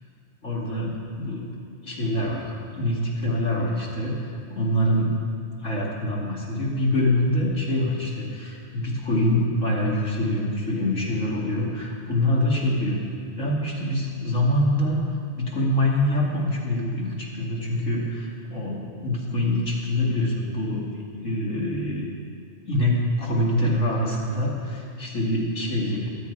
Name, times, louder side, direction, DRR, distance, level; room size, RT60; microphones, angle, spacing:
voice 1, 0.4-1.5 1.8-2.5 2.7-5.2 5.6-13.0 13.4-15.0 15.3-22.1 22.7-26.1, left 1 dB, 90° left, -4 dB, 2.9 m, -25 dB
23.0 x 8.4 x 4.8 m, 2.3 s
omnidirectional pair, 1.3 m